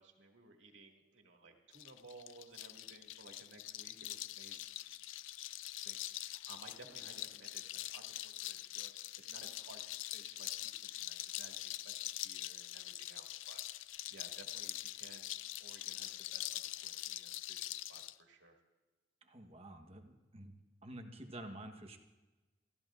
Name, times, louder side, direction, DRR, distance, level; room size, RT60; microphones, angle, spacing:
voice 1, 0.0-4.7 5.8-13.6 14.1-15.3 15.6-18.6, right 3 dB, 80° right, 1 dB, 2.1 m, -58 dB
sound 1, 1.7-18.1, left 15 dB, 85° left, 0.4 m, -44 dB
voice 2, 19.2-20.5 20.8-22.0, right 1 dB, 30° right, 5 dB, 1.1 m, -49 dB
29.5 x 14.5 x 2.5 m, 1.2 s
head